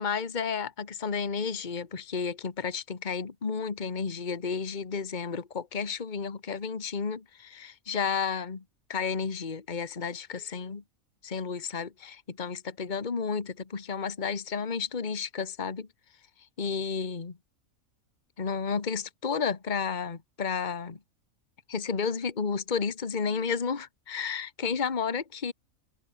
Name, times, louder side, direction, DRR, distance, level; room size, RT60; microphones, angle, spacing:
voice 1, 0.0-8.6 8.9-10.8 11.2-15.9 16.6-17.4 18.4-21.0 21.7-25.5, left 5 dB, 35° left, 1.6 m, -32 dB
omnidirectional pair, 1.5 m